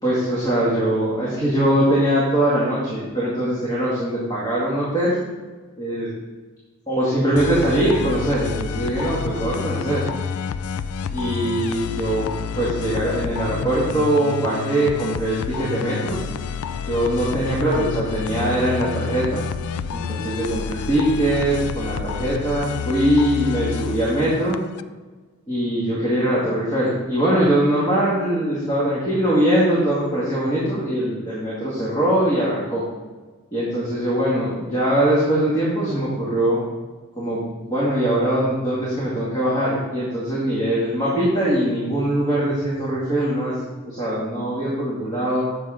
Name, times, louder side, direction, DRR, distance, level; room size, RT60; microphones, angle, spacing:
voice 1, 0.0-5.2 5.8-6.1 6.9-10.0 11.1-12.3 12.5-16.2 16.8-19.4 19.9-24.6 25.5-32.8 33.5-36.7 37.2-37.4 37.7-45.4, right 1 dB, 20° left, -8 dB, 2.1 m, -22 dB
sound 1, 7.4-24.8, left 6 dB, 85° left, 0.4 m, -29 dB
8.6 x 6.7 x 5.0 m, 1.3 s
head